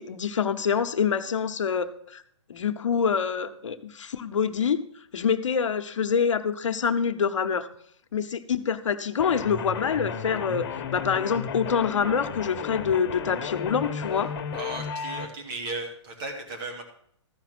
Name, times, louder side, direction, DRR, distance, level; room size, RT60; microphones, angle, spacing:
voice 1, 0.0-2.2 2.5-4.8 5.1-7.7 8.1-14.3, left 6 dB, 85° left, 10 dB, 0.9 m, -26 dB
sound 1, 9.2-15.3, left 7 dB, 50° left, 1.2 m, -34 dB
voice 2, 14.5-16.8, right 3 dB, 45° right, 3 dB, 3.0 m, -35 dB
13.5 x 5.9 x 6.1 m, 0.67 s
hypercardioid pair, 135°, 16 cm